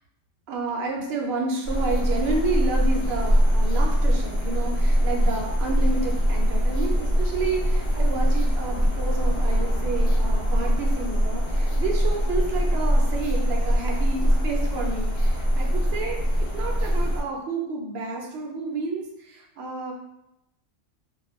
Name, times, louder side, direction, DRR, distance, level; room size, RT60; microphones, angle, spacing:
voice 1, 0.5-16.2 16.5-19.9, right 3 dB, 65° right, 0 dB, 0.7 m, -30 dB
sound 1, 1.6-17.2, equal, 50° left, 0.3 m, -22 dB
2.2 x 2.2 x 3.0 m, 0.84 s
omnidirectional pair, 1.3 m